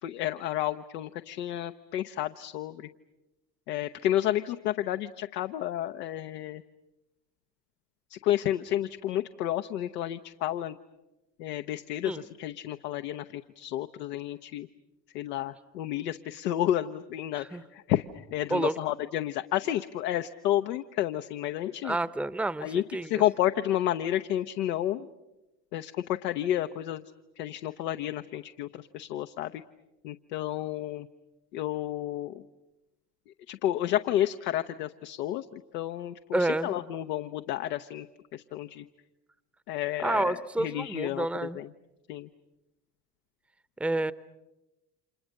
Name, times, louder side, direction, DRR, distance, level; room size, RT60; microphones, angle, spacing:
voice 1, 0.0-2.9 3.7-6.6 8.1-10.8 11.4-14.7 15.1-22.0 22.6-25.1 25.7-29.6 30.0-31.1 31.5-32.4 33.3-38.1 38.3-38.9 39.7-41.7 42.1-42.3, left 12 dB, 75° left, 8 dB, 0.9 m, -31 dB
voice 2, 21.8-23.2 36.3-36.8 40.0-41.6 43.8-44.1, right 2 dB, 5° right, 16 dB, 0.8 m, -29 dB
30.0 x 27.5 x 6.5 m, 0.99 s
hypercardioid pair, 65°, 49 cm